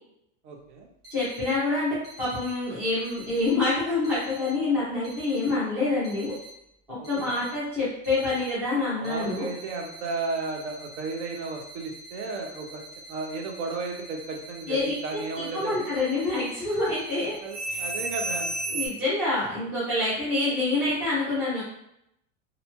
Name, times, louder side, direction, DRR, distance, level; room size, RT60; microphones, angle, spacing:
voice 1, 0.4-0.9 7.0-7.4 9.0-12.8 13.1-15.8 17.4-18.5, right 3 dB, 65° right, 1 dB, 0.7 m, -34 dB
sound 1, 1.0-1.5 2.0-2.5 3.0-3.5 4.0-4.5 5.0-5.5 6.0-6.5 7.0-7.5 8.0-8.5 9.0-18.9, right 2 dB, 35° right, 1.0 m, -38 dB
voice 2, 1.1-6.3 6.9-9.5 14.7-14.9 15.3-17.3 18.7-21.6, left 2 dB, 5° right, -10 dB, 0.3 m, -27 dB
2.7 x 2.2 x 2.8 m, 0.78 s
supercardioid pair, 175°, 37 cm